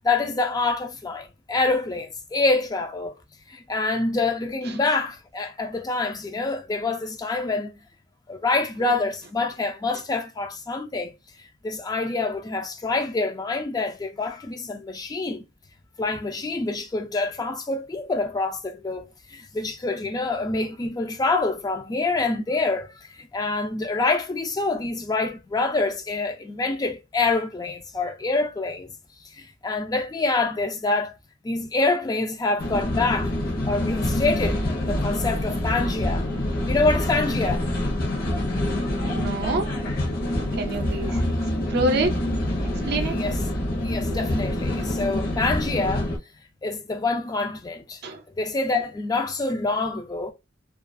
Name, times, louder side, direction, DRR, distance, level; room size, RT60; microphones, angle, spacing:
voice 1, 0.0-3.1 3.5-7.7 8.3-11.1 11.6-15.4 16.0-28.9 29.2-31.1 31.4-33.3 33.7-36.3 36.7-37.6 41.1-41.2 43.0-43.4 43.8-46.1 46.6-48.0 48.4-50.3, left 3 dB, 20° left, 0.3 m, -26 dB
sound 1, 32.6-46.2, left 1 dB, 50° left, 0.8 m, -26 dB
voice 2, 39.1-39.7 40.6-41.2 41.7-42.1 42.9-43.2 48.0-48.2, right 2 dB, 55° right, 0.5 m, -26 dB
2.3 x 2.3 x 2.5 m
head